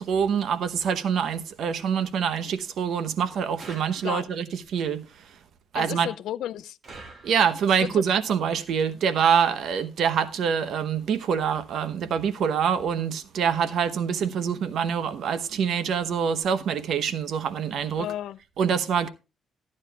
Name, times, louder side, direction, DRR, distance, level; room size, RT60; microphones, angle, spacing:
voice 1, 0.0-5.3 5.7-6.1 7.2-18.1 18.6-19.1, right 7 dB, 70° right, 0.9 m, -25 dB
sound 1, 3.6-4.5 6.8-7.8, right 3 dB, 45° right, 2.2 m, -46 dB
voice 2, 5.7-6.8 7.8-8.0 18.0-18.4, left 12 dB, 80° left, 0.4 m, -33 dB
14.0 x 9.7 x 2.3 m
cardioid pair, 90°, 0 cm